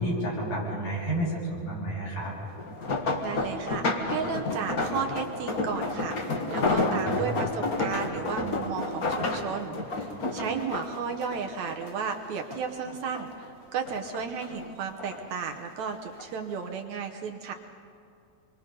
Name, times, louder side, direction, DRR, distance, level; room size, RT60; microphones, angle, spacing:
voice 1, 0.0-2.3 6.9-7.3, right 1 dB, 60° left, -5 dB, 8.5 m, -31 dB
sound 1, 2.6-12.2 12.5-13.5 13.8-15.2 15.9-16.2 16.6-16.7, left 2 dB, 35° left, 1.6 m, -30 dB
voice 2, 3.2-17.5, right 6 dB, 70° right, 3 dB, 2.1 m, -34 dB
27.0 x 23.5 x 5.4 m, 2.6 s
omnidirectional pair, 3.7 m